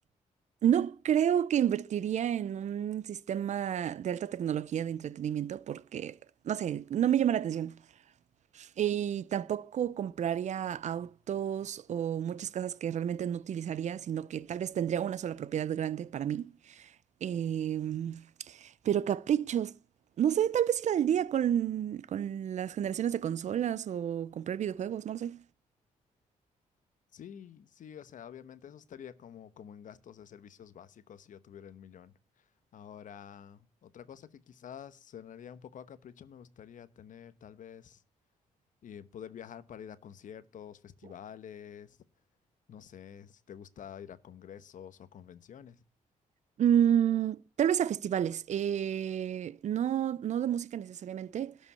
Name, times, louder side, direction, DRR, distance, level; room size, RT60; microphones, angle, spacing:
voice 1, 0.6-6.2 6.4-7.8 8.5-16.9 17.2-19.8 20.2-25.4 46.6-51.6, right 9 dB, 55° right, 0.5 m, -30 dB
voice 2, 27.1-38.0 38.8-42.0 42.7-45.8, left 8 dB, 65° left, 1.0 m, -48 dB
12.5 x 5.3 x 8.4 m
cardioid pair, 75°, 14 cm